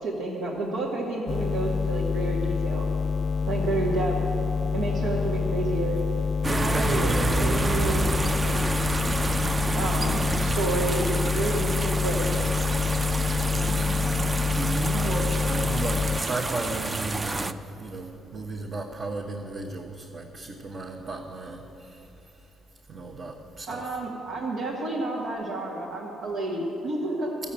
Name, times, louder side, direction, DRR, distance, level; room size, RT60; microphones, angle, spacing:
voice 1, 0.0-2.9 3.5-4.2 4.7-6.0 6.5-8.7 9.7-12.3 23.7-27.5, right 2 dB, 85° right, -5 dB, 1.8 m, -30 dB
sound 1, 1.3-16.2, left 5 dB, 35° left, 0.4 m, -27 dB
sound 2, 6.4-17.5, right 3 dB, 25° right, 0.5 m, -29 dB
voice 2, 6.7-7.4 13.5-13.9 14.5-22.1 22.9-23.8, right 2 dB, 50° right, -1 dB, 1.1 m, -35 dB
13.5 x 7.1 x 8.7 m, 2.9 s
cardioid pair, 90°, 0 cm